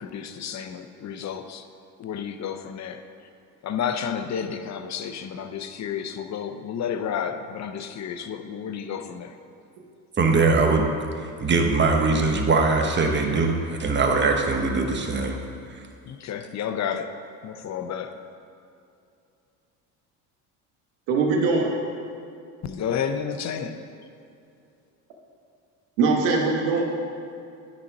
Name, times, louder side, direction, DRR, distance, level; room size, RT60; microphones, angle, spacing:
voice 1, 0.0-1.7 2.0-3.0 3.6-9.4 16.1-17.2 17.4-18.2 22.6-23.8, left 7 dB, 40° left, 8 dB, 0.7 m, -31 dB
voice 2, 10.2-10.9 11.2-15.4 15.7-15.8, right 3 dB, 25° right, 3 dB, 1.1 m, -21 dB
voice 3, 21.1-21.7 26.0-26.8, right 4 dB, 75° right, 0 dB, 1.3 m, -21 dB
9.6 x 4.2 x 5.9 m, 2.6 s
supercardioid pair, 80°, 43 cm